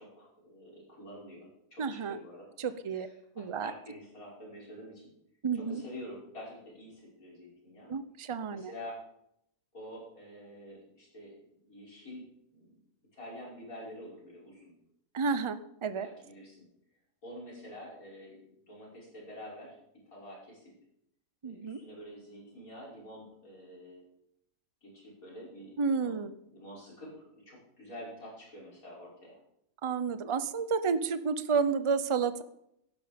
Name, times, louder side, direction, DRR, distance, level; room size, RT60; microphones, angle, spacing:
voice 1, 0.0-2.5 2.9-5.1 5.5-7.9 8.5-9.0 9.7-12.2 12.5-12.8 13.1-14.7 16.0-16.6 17.2-19.8 20.1-20.7 21.4-24.0 24.8-29.4, equal, 60° left, -4 dB, 6.0 m, -48 dB
voice 2, 1.8-2.2 2.6-3.1 3.4-3.7 5.4-5.8 7.9-8.7 15.1-16.1 21.4-21.8 25.8-26.3 29.8-32.4, right 5 dB, 40° right, 13 dB, 0.4 m, -31 dB
16.5 x 12.0 x 5.2 m, 0.77 s
omnidirectional pair, 1.7 m